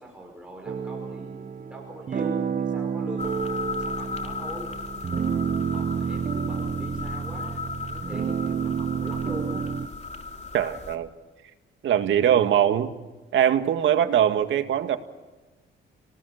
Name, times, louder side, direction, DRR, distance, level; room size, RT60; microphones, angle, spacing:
voice 1, 0.0-4.7 5.7-9.7, right 1 dB, 5° right, 0 dB, 5.7 m, -41 dB
sound 1, 0.7-9.9, right 7 dB, 40° right, 1.3 m, -30 dB
sound 2, 3.2-11.0, left 4 dB, 35° left, 3.4 m, -36 dB
voice 2, 10.5-11.1 11.8-12.9 13.3-15.0, right 10 dB, 70° right, 8 dB, 2.0 m, -21 dB
29.5 x 19.0 x 6.7 m, 1.2 s
cardioid pair, 90°, 20 cm